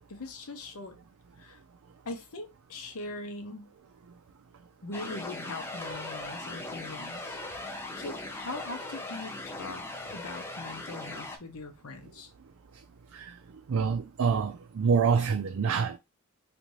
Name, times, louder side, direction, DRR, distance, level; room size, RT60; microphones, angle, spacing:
voice 1, 0.1-1.0 1.4-1.6 2.0-3.7 4.8-7.4 7.9-9.8 10.1-12.3, left 2 dB, 90° left, 0.8 m, -41 dB
sound 1, 4.9-11.4, left 2 dB, 10° left, 0.5 m, -39 dB
voice 2, 13.7-16.0, right 6 dB, 70° right, 0.4 m, -26 dB
3.3 x 2.7 x 3.1 m
head